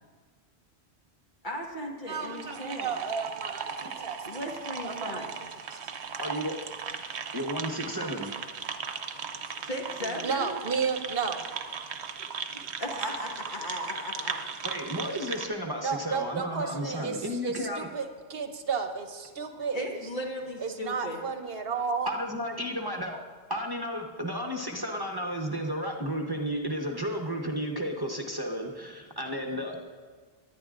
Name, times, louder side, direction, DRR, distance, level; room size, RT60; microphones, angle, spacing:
voice 1, 1.4-2.9 4.2-5.3 9.6-10.5 12.8-14.4 16.3-16.4 19.7-21.2, equal, 50° left, -1 dB, 1.6 m, -36 dB
voice 2, 2.0-4.2 4.8-5.5 5.7-5.8 10.0-11.5 15.8-20.0 20.6-22.1, right 5 dB, 65° right, 6 dB, 1.0 m, -33 dB
sound 1, 2.1-15.5, right 6 dB, 90° right, 1.0 m, -37 dB
voice 3, 6.2-6.5 7.3-8.3 14.6-17.9 22.0-23.2 23.5-29.8, equal, 25° right, 1 dB, 0.9 m, -33 dB
18.0 x 11.0 x 2.5 m, 1.5 s
omnidirectional pair, 1.1 m